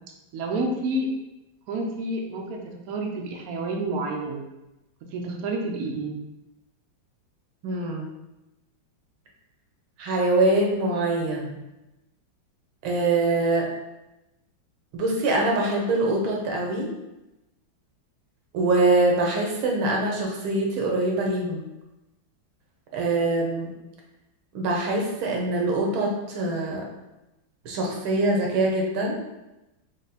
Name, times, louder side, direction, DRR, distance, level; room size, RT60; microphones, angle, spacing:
voice 1, 0.3-1.1 1.7-4.4 5.1-6.1, right 2 dB, 65° right, 1 dB, 0.9 m, -29 dB
voice 2, 7.6-8.1 10.0-11.5 12.8-13.7 14.9-16.9 18.5-21.6 22.9-23.7 24.5-26.9 27.6-29.2, right 2 dB, 85° right, 0 dB, 1.7 m, -24 dB
5.1 x 2.3 x 4.0 m, 0.97 s
omnidirectional pair, 2.2 m